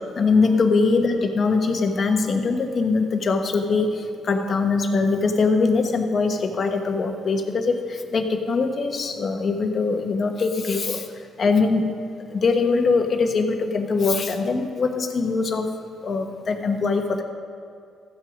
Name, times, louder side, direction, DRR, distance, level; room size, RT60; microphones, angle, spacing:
voice 1, 0.2-11.1 11.4-11.9 12.3-15.7 16.0-17.2, left 4 dB, 50° left, 5 dB, 1.2 m, -22 dB
14.5 x 7.8 x 5.1 m, 2.5 s
cardioid pair, 90°, 0 cm